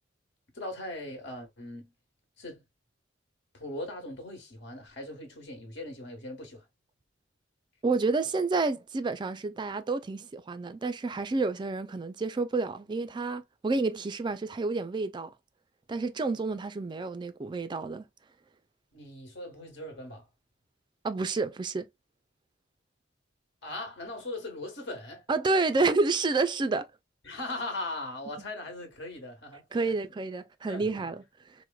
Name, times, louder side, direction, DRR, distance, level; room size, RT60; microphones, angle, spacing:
voice 1, 0.5-1.9 2.4-2.6 3.5-6.6 18.9-20.3 23.6-25.2 27.2-30.0 30.7-31.1, left 2 dB, 65° left, 1.3 m, -39 dB
voice 2, 7.8-15.3 15.9-18.0 21.0-21.9 25.3-26.9 29.7-31.2, right 3 dB, 25° right, 0.3 m, -29 dB
4.6 x 2.1 x 2.2 m
head